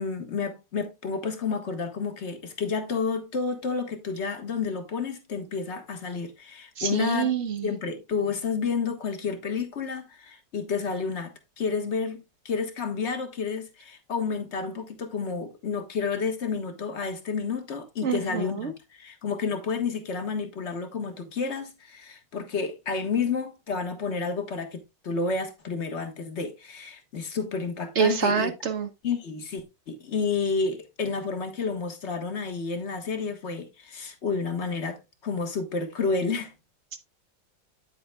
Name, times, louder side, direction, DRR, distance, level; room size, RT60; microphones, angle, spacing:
voice 1, 0.0-28.5 29.0-36.5, left 5 dB, 40° left, 1.5 m, -30 dB
voice 2, 6.8-7.7 18.0-18.7 28.0-28.9, right 7 dB, 50° right, 1.0 m, -26 dB
9.3 x 7.9 x 2.3 m
omnidirectional pair, 1.9 m